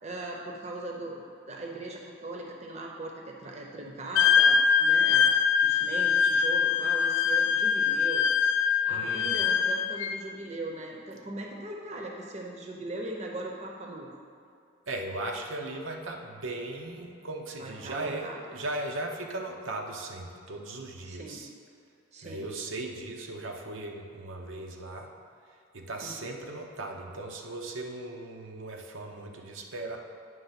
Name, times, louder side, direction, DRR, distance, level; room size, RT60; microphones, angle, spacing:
voice 1, 0.0-5.3 5.6-8.5 8.8-14.1 17.6-18.4 21.0-21.5 22.1-22.5 26.0-26.2, right 2 dB, 35° right, 0 dB, 0.7 m, -39 dB
Wind instrument woodwind instrument, 4.2-10.1, left 6 dB, 75° left, 0.3 m, -23 dB
voice 2, 8.9-9.4 14.9-21.5 22.2-25.1 25.7-30.0, right 2 dB, 80° right, 1 dB, 0.7 m, -37 dB
9.3 x 3.2 x 5.7 m, 2.4 s
head